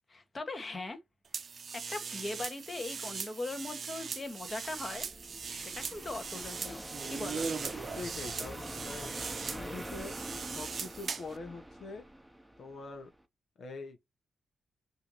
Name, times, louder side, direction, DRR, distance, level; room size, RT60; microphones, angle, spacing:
voice 1, 0.1-1.0 1.7-5.1 5.5-7.5, left 2 dB, 30° left, 1.4 m, -40 dB
sound 1, 1.3-11.4, right 5 dB, 50° right, 0.7 m, -40 dB
sound 2, 4.3-13.2, right 1 dB, 5° right, 0.8 m, -45 dB
voice 2, 8.0-9.2 9.5-10.2 10.5-12.0 12.6-13.1 13.6-14.0, left 3 dB, 60° left, 1.0 m, -44 dB
5.5 x 2.8 x 2.9 m
cardioid pair, 95°, 0 cm